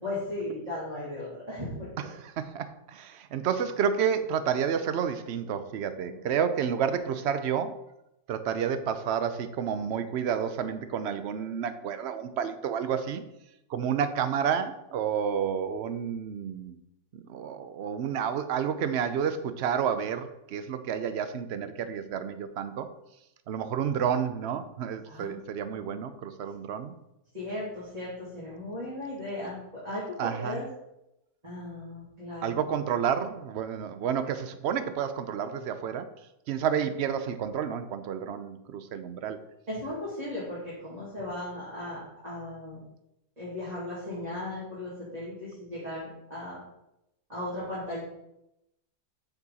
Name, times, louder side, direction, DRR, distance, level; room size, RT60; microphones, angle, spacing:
voice 1, 0.0-1.9 6.1-6.2 25.1-25.4 27.3-30.6 31.4-32.6 39.7-42.8 43.4-46.6 47.3-48.0, left 1 dB, 25° right, -10 dB, 2.9 m, -36 dB
voice 2, 2.0-7.8 8.3-13.2 13.7-16.7 17.1-22.9 23.5-26.9 30.2-30.6 32.4-36.1 36.5-39.4, right 8 dB, 65° right, 10 dB, 0.6 m, -30 dB
6.9 x 6.9 x 4.2 m, 0.86 s
omnidirectional pair, 1.8 m